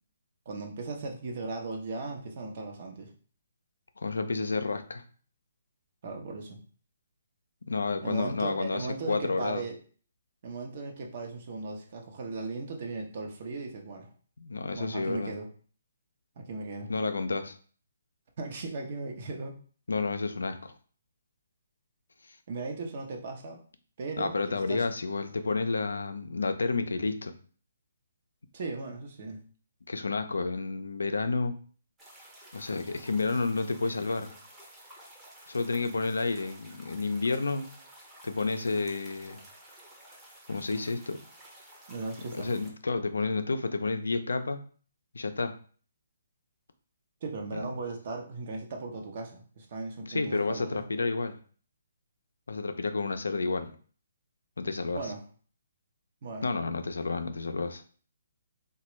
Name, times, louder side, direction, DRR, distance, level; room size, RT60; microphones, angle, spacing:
voice 1, 0.5-3.1 6.0-6.6 8.0-9.7 10.4-14.1 14.7-15.5 16.4-16.9 18.4-19.5 22.5-23.6 24.0-24.8 28.5-29.4 41.9-42.5 47.2-50.9 54.9-55.2 56.2-56.5, right 3 dB, 50° right, 2 dB, 0.7 m, -37 dB
voice 2, 4.0-5.0 7.7-9.6 14.4-15.3 16.9-17.6 19.9-20.7 24.2-27.3 29.9-31.5 32.5-34.3 35.5-37.7 38.2-39.4 40.5-41.2 42.3-44.6 45.1-45.5 47.5-47.6 50.0-51.4 52.5-53.7 54.6-55.1 56.4-57.8, left 3 dB, 85° left, 8 dB, 0.4 m, -30 dB
sound 1, 32.0-42.7, right 1 dB, 10° right, 0.7 m, -52 dB
3.2 x 2.2 x 3.0 m, 0.42 s
hypercardioid pair, 145°, 0 cm